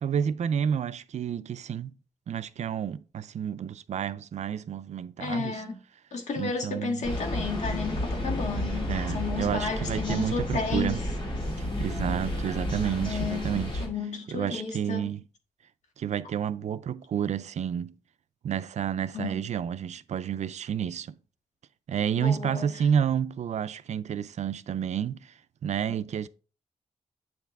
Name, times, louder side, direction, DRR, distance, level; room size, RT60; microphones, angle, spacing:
voice 1, 0.0-1.9 2.3-5.6 6.4-7.0 8.9-11.0 11.6-13.8 14.3-15.3 16.0-17.9 18.4-21.2 21.9-25.3 25.6-26.3, right 8 dB, 75° right, 0.4 m, -30 dB
voice 2, 5.2-5.8 6.1-11.0 13.0-13.5 13.8-15.1 19.1-19.4 22.2-22.7, left 4 dB, 85° left, 1.6 m, -33 dB
sound 1, 7.0-13.9, left 1 dB, 45° left, 2.3 m, -31 dB
8.1 x 4.5 x 3.4 m
wide cardioid pair, 90°, 12 cm